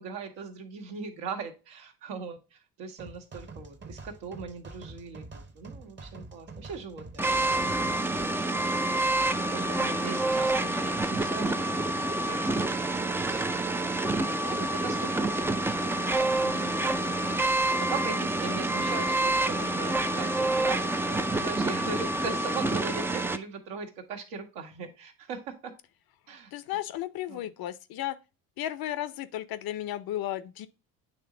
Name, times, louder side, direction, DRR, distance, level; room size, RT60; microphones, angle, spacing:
voice 1, 0.0-7.6 9.5-13.6 14.4-16.9 17.8-25.7 26.3-26.5 27.3-27.5, right 5 dB, 75° right, 1.5 m, -40 dB
sound 1, 3.0-8.3, right 3 dB, 25° right, 0.9 m, -45 dB
sound 2, 7.2-23.4, right 2 dB, 5° right, 0.3 m, -27 dB
voice 2, 26.5-28.2 28.6-30.7, left 13 dB, 50° left, 0.7 m, -34 dB
9.0 x 3.2 x 3.7 m
hypercardioid pair, 65°, 46 cm